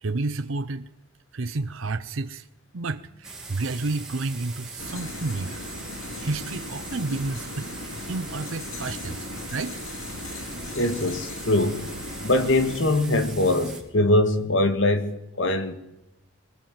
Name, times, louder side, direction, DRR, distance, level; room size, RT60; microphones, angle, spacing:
voice 1, 0.0-0.9 1.3-2.5 2.7-5.7 6.2-9.8, right 3 dB, 75° right, 0.8 m, -31 dB
sound 1, 3.2-13.8, right 3 dB, 5° right, 3.3 m, -41 dB
sound 2, 4.8-12.8, left 2 dB, 85° left, 3.3 m, -38 dB
voice 2, 10.8-11.9 12.2-15.7, left 2 dB, 65° left, 2.1 m, -22 dB
22.5 x 19.5 x 7.7 m
head